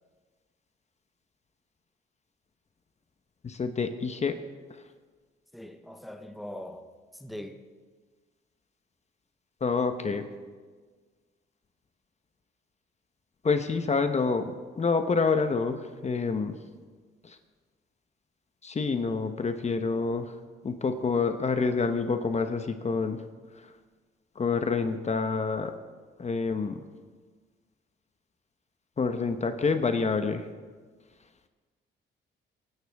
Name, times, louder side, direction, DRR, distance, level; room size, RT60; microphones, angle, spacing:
voice 1, 3.4-4.4 9.6-10.2 13.4-14.5 14.8-16.5 17.2-17.4 18.6-20.3 20.6-23.2 24.4-25.7 26.2-26.8 29.0-30.5, left 4 dB, 35° left, 8 dB, 1.0 m, -27 dB
voice 2, 5.5-7.6, left 1 dB, ahead, 6 dB, 1.1 m, -42 dB
23.0 x 11.5 x 3.6 m, 1.5 s
cardioid pair, 90°, 20 cm